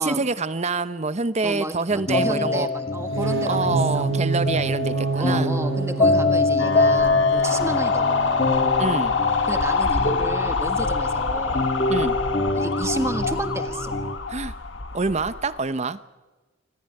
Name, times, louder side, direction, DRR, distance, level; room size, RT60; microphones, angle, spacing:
voice 1, 0.0-2.7 3.4-5.5 8.8-9.1 11.9-12.2 14.3-14.5 14.9-16.0, right 3 dB, 35° right, 14 dB, 0.8 m, -26 dB
voice 2, 1.4-4.0 5.2-8.4 9.5-11.7 12.5-14.0, right 1 dB, 15° right, 8 dB, 1.6 m, -32 dB
sound 1, 1.9-14.2, left 2 dB, 40° left, 1.7 m, -25 dB
sound 2, 3.0-8.9, right 4 dB, 90° right, 0.7 m, -28 dB
sound 3, 6.6-15.6, left 5 dB, 75° left, 1.6 m, -25 dB
26.0 x 15.0 x 9.8 m, 1.2 s
head